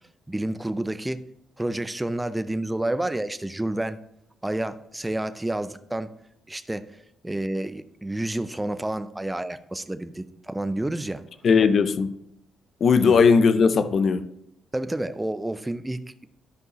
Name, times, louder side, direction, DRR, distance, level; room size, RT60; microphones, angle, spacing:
voice 1, 0.3-1.2 1.6-4.0 4.4-6.1 6.5-6.9 7.2-11.2 13.0-13.2 14.7-16.3, right 1 dB, 10° right, 0.5 m, -29 dB
voice 2, 11.4-12.2 12.8-14.3, left 5 dB, 55° left, 0.6 m, -18 dB
12.0 x 5.3 x 3.1 m
cardioid pair, 90°, 0 cm